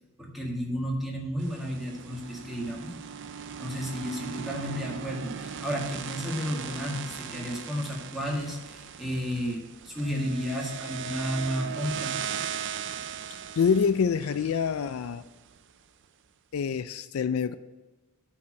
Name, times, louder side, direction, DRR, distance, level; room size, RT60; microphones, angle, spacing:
voice 1, 0.2-2.9 3.6-12.2, equal, ahead, 1.9 m, -32 dB
sound 1, 1.4-15.6, right 7 dB, 60° right, 0.5 m, -38 dB
voice 2, 13.3-15.2 16.5-17.5, left 6 dB, 70° left, 0.4 m, -26 dB
8.5 x 4.8 x 7.5 m
head